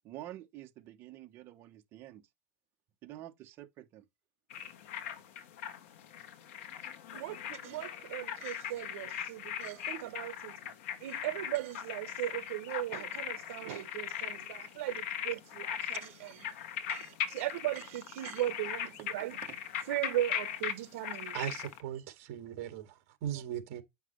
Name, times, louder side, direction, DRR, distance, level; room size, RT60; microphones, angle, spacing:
voice 1, 0.0-2.3 3.0-4.1 8.9-9.0 9.6-10.1 10.6-10.7 19.2-19.6, right 14 dB, 30° right, 1.1 m, -49 dB
sound 1, 4.5-21.8, left 9 dB, 65° left, 1.2 m, -40 dB
voice 2, 7.1-10.5 11.0-16.5 17.3-19.4 19.9-21.3, right 14 dB, 65° right, 1.0 m, -37 dB
voice 3, 21.3-22.9 23.2-23.8, right 11 dB, 45° right, 2.1 m, -38 dB
8.8 x 5.9 x 3.2 m
supercardioid pair, 175°, 8 cm